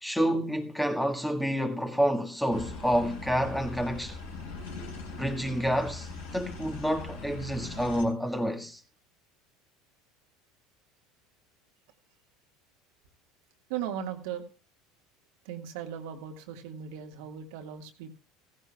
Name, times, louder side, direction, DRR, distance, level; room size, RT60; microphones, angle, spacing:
voice 1, 0.0-4.2 5.2-8.8, equal, 5° left, 1.7 m, -29 dB
sound 1, 2.5-8.0, left 3 dB, 75° left, 4.3 m, -40 dB
voice 2, 13.7-14.4 15.4-18.2, right 9 dB, 70° right, 1.6 m, -37 dB
16.0 x 15.5 x 2.3 m
hypercardioid pair, 75°, 0 cm